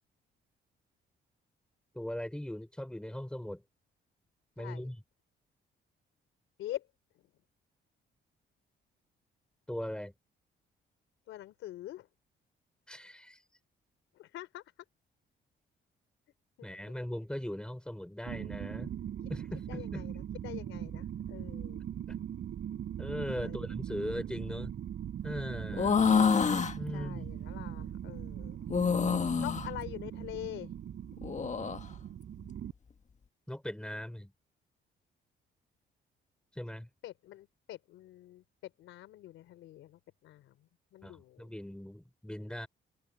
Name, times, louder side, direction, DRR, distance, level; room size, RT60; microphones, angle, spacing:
voice 1, 1.9-3.6 4.6-5.0 9.7-10.1 12.9-13.4 16.6-18.9 19.3-20.0 22.1-22.2 23.0-24.7 25.2-26.0 26.8-27.3 33.5-34.3 36.5-36.9 41.0-42.7, left 1 dB, 5° left, 5.2 m, -39 dB
voice 2, 4.6-4.9 6.6-6.9 11.3-12.1 14.2-14.6 16.6-16.7 19.2-19.3 19.7-21.8 23.4-23.7 26.9-28.6 29.4-30.7 37.0-40.5 40.9-41.5, left 14 dB, 85° left, 3.9 m, -45 dB
sound 1, 18.3-32.7, right 10 dB, 65° right, 4.7 m, -40 dB
sound 2, 25.7-26.7 28.7-29.7 31.2-31.8, left 6 dB, 35° left, 1.6 m, -27 dB
cardioid pair, 90°, 20 cm